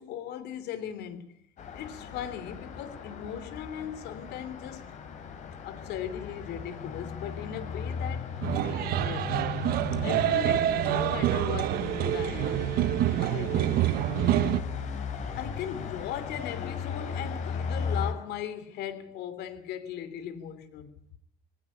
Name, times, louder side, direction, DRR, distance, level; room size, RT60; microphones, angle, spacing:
voice 1, 0.0-1.3 1.7-4.9 5.6-8.3 8.6-9.4 10.0-12.7 13.1-13.9 15.3-20.9, left 9 dB, 60° left, 3.0 m, -38 dB
Traffic noise roadway noise, 1.6-18.1, left 6 dB, 40° left, 3.4 m, -37 dB
sound 1, 8.4-14.6, right 13 dB, 50° right, 1.0 m, -27 dB
21.0 x 18.0 x 8.7 m
cardioid pair, 175°, 19 cm